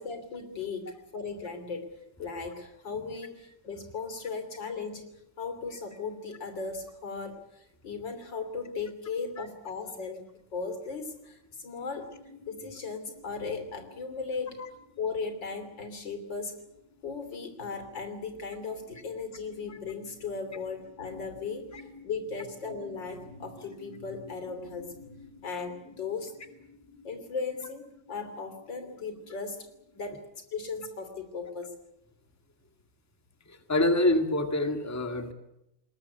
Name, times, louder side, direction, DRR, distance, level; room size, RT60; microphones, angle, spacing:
voice 1, 0.0-1.9 2.2-5.1 5.4-12.1 12.5-14.6 15.0-16.6 17.0-26.3 27.0-29.7 30.0-30.2 30.5-31.7, left 4 dB, 80° left, 8 dB, 3.8 m, -37 dB
sound 1, 11.8-30.1, left 2 dB, 60° right, 4.6 m, -55 dB
voice 2, 33.5-35.3, left 1 dB, 10° left, 6 dB, 1.9 m, -26 dB
21.0 x 20.0 x 9.6 m, 0.85 s
omnidirectional pair, 2.0 m